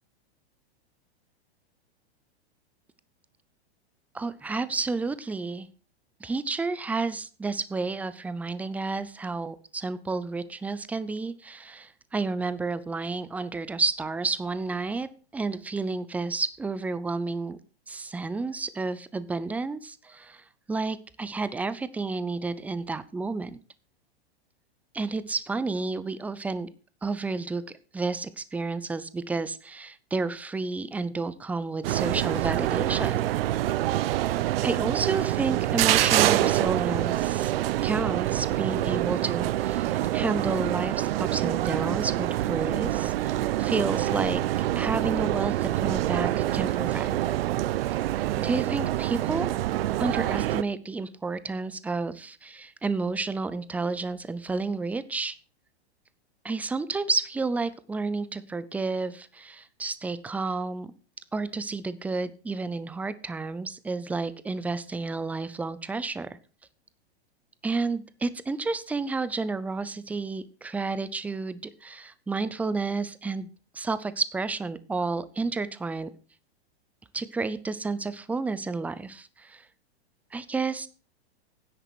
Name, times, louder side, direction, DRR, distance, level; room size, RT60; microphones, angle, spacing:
voice 1, 4.1-5.7 6.2-15.1 15.3-17.6 17.9-23.6 24.9-26.7 27.0-27.6 27.9-33.3 34.6-37.5 37.8-44.4 44.8-47.2 48.4-49.5 50.0-55.3 56.4-60.9 61.3-66.4 67.6-73.5 73.7-76.1 77.1-79.6 80.3-80.9, right 3 dB, 5° right, 16 dB, 0.5 m, -31 dB
sound 1, 31.8-50.6, right 14 dB, 65° right, 0.7 m, -26 dB
10.5 x 8.0 x 5.9 m, 0.37 s
hypercardioid pair, 135°, 32 cm